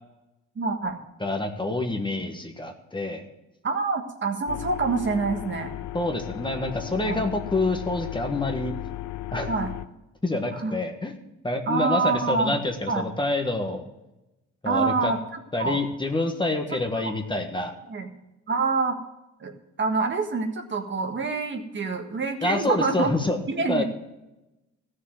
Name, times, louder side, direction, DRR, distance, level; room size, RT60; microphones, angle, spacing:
voice 1, 0.6-1.0 3.6-5.7 7.1-7.2 9.5-9.7 10.5-10.7 11.7-12.5 12.9-13.0 14.6-15.8 17.9-18.1 18.5-19.0 19.4-19.5 19.8-23.1 23.5-23.8, right 4 dB, 40° right, 4 dB, 1.7 m, -26 dB
voice 2, 1.2-3.2 5.9-8.7 9.3-9.5 10.2-11.1 11.4-13.9 14.6-15.1 15.5-17.7 22.4-23.4 23.7-23.8, left 2 dB, 15° left, 4 dB, 1.5 m, -27 dB
sound 1, 4.5-9.9, left 15 dB, 75° left, 0.6 m, -35 dB
14.5 x 6.6 x 7.6 m, 0.96 s
cardioid pair, 90°, 30 cm